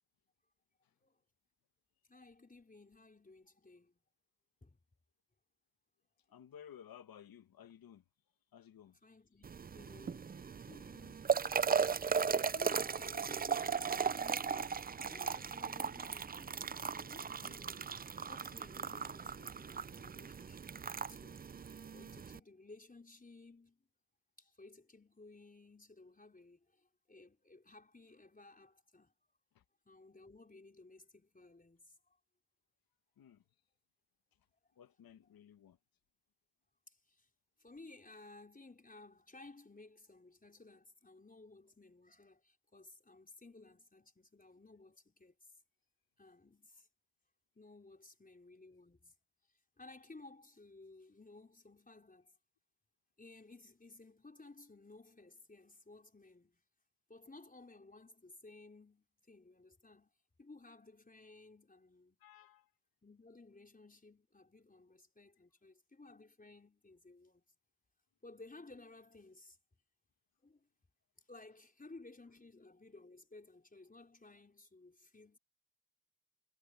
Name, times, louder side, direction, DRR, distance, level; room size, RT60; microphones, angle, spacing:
voice 1, 2.1-4.0 4.6-4.8 9.0-11.7 12.5-23.8 24.4-29.1 29.8-32.2 36.9-37.3 37.6-45.5 46.2-46.9 47.5-49.1 49.8-52.3 53.2-56.6 57.1-60.1 60.4-62.2 63.0-67.4 68.2-69.6 70.4-70.7 71.3-75.4, left 3 dB, 25° left, 5.0 m, -58 dB
voice 2, 6.3-8.0 8.5-9.0 29.5-29.6 33.2-33.4 34.8-35.8 62.2-62.7, left 9 dB, 85° left, 1.4 m, -56 dB
sound 1, 9.4-22.4, right 6 dB, 25° right, 0.4 m, -37 dB
cardioid pair, 75°, 34 cm